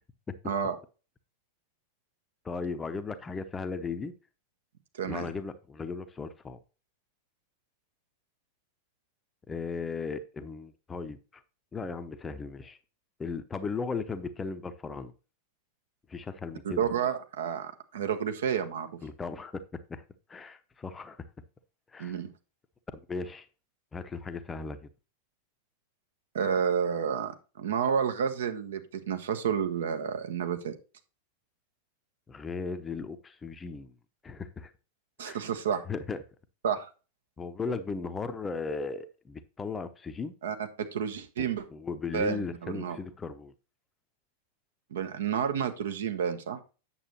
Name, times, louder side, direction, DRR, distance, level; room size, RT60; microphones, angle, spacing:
voice 1, 2.4-4.1 5.0-6.6 9.5-11.4 11.7-12.8 13.2-15.1 16.1-16.9 19.0-20.0 20.3-21.3 21.9-22.2 23.1-23.5 23.9-24.8 32.3-33.9 34.2-34.7 35.3-35.4 35.9-36.2 37.4-40.3 41.4-43.5, left 4 dB, 15° left, 0.7 m, -36 dB
voice 2, 4.9-5.3 16.6-18.9 22.0-22.3 26.3-30.7 35.2-35.9 36.6-36.9 40.4-41.6 42.1-43.0 44.9-46.6, right 7 dB, 60° right, 1.1 m, -30 dB
8.8 x 7.0 x 3.0 m
figure-of-eight pair, 90°, 0 cm